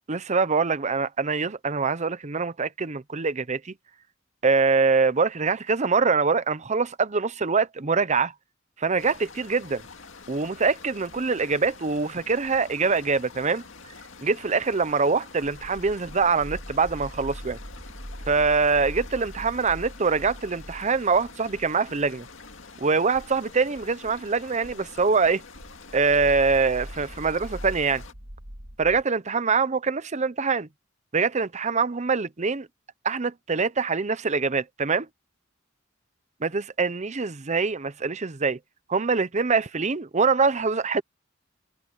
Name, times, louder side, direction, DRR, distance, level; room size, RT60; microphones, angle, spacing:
voice 1, 0.1-3.7 4.4-8.3 8.8-9.8 10.3-13.6 14.2-17.6 18.3-22.3 22.8-25.4 25.9-28.0 28.8-30.7 31.1-32.7 33.0-35.1 36.4-38.6 38.9-41.0, right 4 dB, 35° right, 0.8 m, -24 dB
sound 1, 9.0-28.1, left 4 dB, 75° left, 2.2 m, -46 dB
sound 2, 15.5-29.0, equal, 55° right, 3.9 m, -42 dB
head